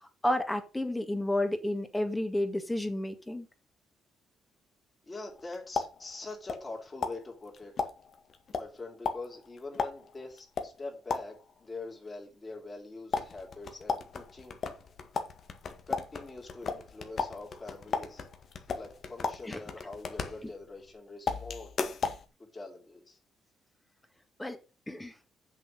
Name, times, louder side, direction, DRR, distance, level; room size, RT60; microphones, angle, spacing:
voice 1, 0.2-3.5 19.5-19.6 24.4-24.6 24.9-25.1, left 1 dB, 10° left, 1.8 m, -31 dB
voice 2, 5.1-7.9 8.5-14.6 15.9-18.3 18.7-21.8 22.5-23.2, left 3 dB, 25° left, 3.8 m, -44 dB
sound 1, 5.3-6.8 7.0-11.6 13.1-20.9 21.3-22.3, left 5 dB, 55° left, 1.7 m, -36 dB
7.4 x 6.3 x 6.3 m
cardioid pair, 90°, 0 cm